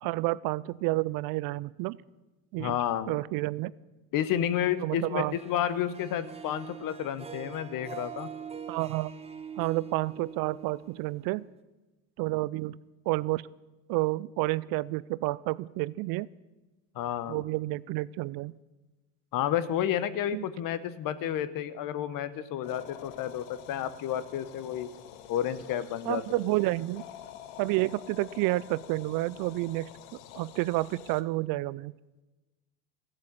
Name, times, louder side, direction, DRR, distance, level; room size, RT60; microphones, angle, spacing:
voice 1, 0.0-2.0 2.5-2.7 3.1-3.7 4.8-5.4 8.7-9.1 9.6-11.5 12.2-12.8 13.1-13.5 13.9-16.3 17.3-18.6 20.3-20.5 26.1-27.0 27.6-29.9 30.4-31.9, right 20 dB, 60° right, 21 dB, 0.5 m, -30 dB
voice 2, 2.6-3.1 4.1-8.3 16.9-17.4 19.3-24.9 25.3-26.2, left 10 dB, 55° left, 14 dB, 1.0 m, -31 dB
Harp, 5.3-11.6, right 7 dB, 15° right, 0.9 m, -44 dB
sound 1, 22.6-31.2, left 11 dB, 85° left, 1.1 m, -48 dB
15.5 x 7.7 x 8.7 m, 1.1 s
supercardioid pair, 110°, 40 cm